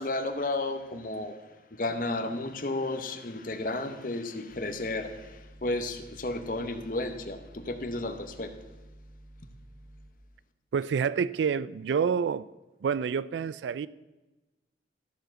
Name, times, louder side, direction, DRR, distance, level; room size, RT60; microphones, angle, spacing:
voice 1, 0.0-1.4 1.7-8.5, left 2 dB, 50° left, 0.9 m, -33 dB
sound 1, 4.5-10.1, right 1 dB, 15° right, 1.0 m, -52 dB
voice 2, 10.7-12.5 12.8-13.9, right 6 dB, 90° right, 0.3 m, -28 dB
13.0 x 4.9 x 7.6 m
head